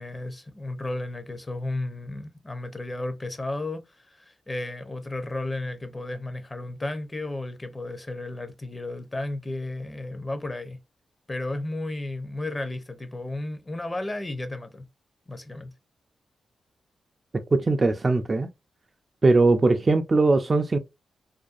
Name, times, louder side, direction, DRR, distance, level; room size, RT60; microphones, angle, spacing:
voice 1, 0.0-10.8 11.3-14.9 15.3-15.7, left 2 dB, 30° left, 0.6 m, -33 dB
voice 2, 17.5-18.5 19.2-20.8, right 3 dB, 40° right, 0.3 m, -20 dB
2.6 x 2.2 x 2.4 m
cardioid pair, 55°, 0 cm